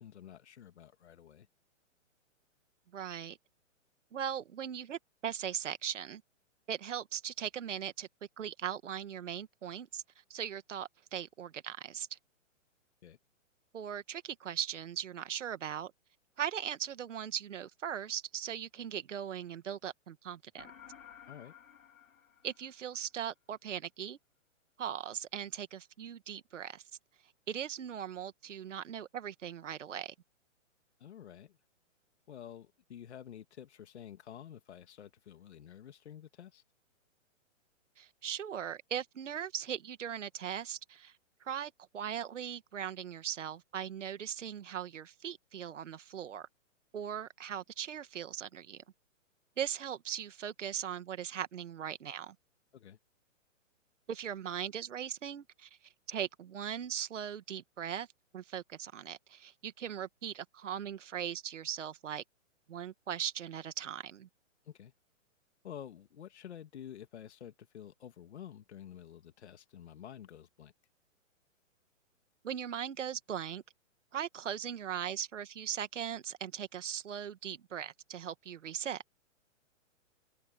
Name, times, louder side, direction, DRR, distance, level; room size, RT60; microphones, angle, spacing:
voice 1, 0.0-1.5 13.0-13.2 21.3-21.5 31.0-31.6 32.3-36.6 52.7-53.0 64.7-64.9 65.6-70.7, left 9 dB, 55° left, 2.4 m, -50 dB
voice 2, 2.9-3.4 4.1-6.2 6.7-8.1 8.4-10.0 10.3-12.2 13.7-15.9 16.4-20.7 22.4-24.2 24.8-26.8 27.5-30.1 38.0-41.1 41.4-46.5 46.9-48.8 49.6-52.4 54.1-55.7 56.1-58.1 58.3-62.2 62.7-64.3 72.4-73.6 74.1-79.0, right 9 dB, 70° right, 1.9 m, -39 dB
sound 1, 20.6-23.2, left 9 dB, 90° left, 3.5 m, -55 dB
hypercardioid pair, 170°, 39 cm